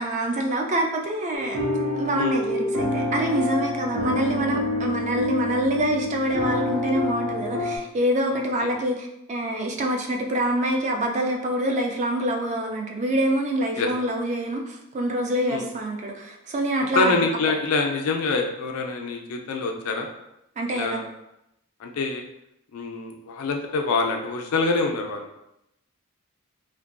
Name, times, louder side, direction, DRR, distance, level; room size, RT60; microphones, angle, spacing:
voice 1, 0.0-1.6 1.9-17.2 20.6-21.0, right 1 dB, 35° right, 2 dB, 0.3 m, -26 dB
sound 1, 1.3-7.8, left 1 dB, 80° right, 0.6 m, -27 dB
voice 2, 8.3-8.7 13.8-13.9 15.5-15.7 16.9-20.1 20.7-21.1 21.8-22.2 22.7-25.4, left 3 dB, 90° left, 3 dB, 0.4 m, -25 dB
2.5 x 2.2 x 2.4 m, 0.84 s
head